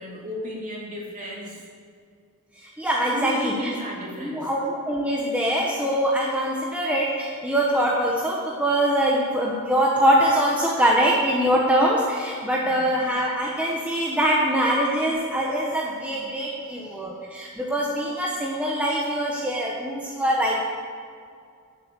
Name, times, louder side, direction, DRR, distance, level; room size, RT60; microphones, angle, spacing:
voice 1, 0.0-1.6 3.1-4.5 12.6-12.8 16.5-16.9, left 1 dB, 35° right, -3 dB, 3.2 m, -34 dB
voice 2, 2.5-3.7 4.2-20.7, equal, 5° right, -4 dB, 1.2 m, -23 dB
11.0 x 8.6 x 8.2 m, 2.2 s
head